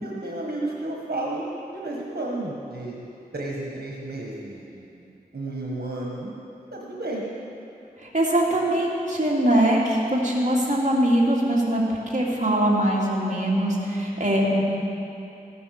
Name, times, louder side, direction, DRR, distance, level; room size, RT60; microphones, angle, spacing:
voice 1, 0.0-3.1 3.3-6.3 6.7-7.2, right 2 dB, 90° right, -2 dB, 1.4 m, -32 dB
voice 2, 8.1-11.8 12.1-14.6, right 1 dB, 50° right, -4 dB, 2.6 m, -22 dB
15.0 x 10.0 x 6.6 m, 2.8 s
wide cardioid pair, 55°, 16 cm